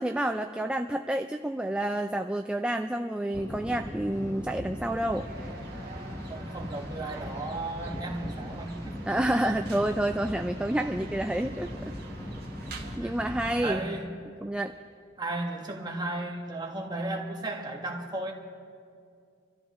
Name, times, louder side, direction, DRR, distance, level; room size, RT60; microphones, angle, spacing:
voice 1, 0.0-5.3 9.1-11.7 13.0-13.8 14.4-14.7, right 1 dB, 5° right, 6 dB, 0.3 m, -29 dB
sound 1, 3.3-13.7, left 1 dB, 15° left, 0.9 m, -39 dB
sound 2, 5.1-13.0, right 3 dB, 55° right, 1.5 m, -47 dB
voice 2, 6.3-9.0 12.6-13.1 13.6-14.1 15.2-18.3, right 2 dB, 25° right, 0 dB, 1.4 m, -35 dB
27.0 x 13.5 x 3.0 m, 2.4 s
head